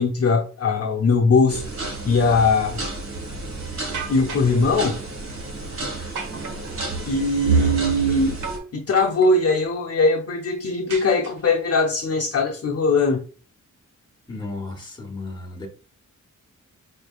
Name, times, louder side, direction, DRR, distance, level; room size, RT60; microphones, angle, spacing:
voice 1, 0.0-2.8 4.1-5.0 7.1-8.4 8.7-13.2, left 3 dB, 50° left, 0.7 m, -20 dB
sound 1, 1.5-8.6, right 3 dB, 60° right, 1.6 m, -29 dB
sound 2, 3.9-4.6 6.2-7.0 8.4-8.7 9.0-9.6 10.9-11.7, right 5 dB, 75° right, 1.1 m, -35 dB
voice 2, 14.3-15.7, left 3 dB, 15° left, 1.2 m, -34 dB
4.8 x 3.3 x 2.4 m
wide cardioid pair, 145°, 31 cm